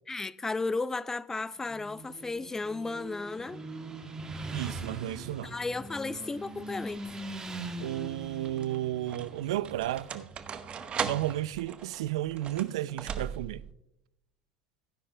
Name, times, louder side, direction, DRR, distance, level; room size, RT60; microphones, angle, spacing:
voice 1, 0.1-3.6 5.4-7.0, left 3 dB, 15° left, 0.4 m, -34 dB
Motorcycle, 1.6-11.4, right 2 dB, 20° right, 1.8 m, -42 dB
voice 2, 4.5-5.5 7.8-10.3 11.0-13.6, right 14 dB, 80° right, 0.4 m, -33 dB
sound 1, 6.9-7.4 8.2-13.7, right 7 dB, 40° right, 0.9 m, -39 dB
17.0 x 10.0 x 2.2 m
hypercardioid pair, 85°, 3 cm